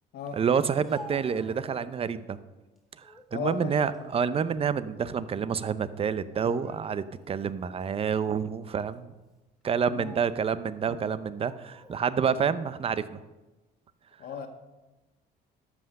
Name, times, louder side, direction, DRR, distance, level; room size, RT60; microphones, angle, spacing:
voice 1, 0.3-2.4 3.3-9.1 9.6-13.2, right 6 dB, 35° right, 14 dB, 0.6 m, -28 dB
Speech, 0.6-2.3 2.8-3.3 3.8-5.0 5.3-5.5 6.3-7.2 7.8-7.9 8.7-9.0 9.8-10.5 11.3-12.0, equal, ahead, 2.0 m, -50 dB
voice 2, 3.3-3.8 9.9-10.1 14.2-14.5, left 6 dB, 70° left, 5 dB, 1.6 m, -35 dB
13.0 x 5.9 x 6.6 m, 1.1 s
cardioid pair, 110°, 17 cm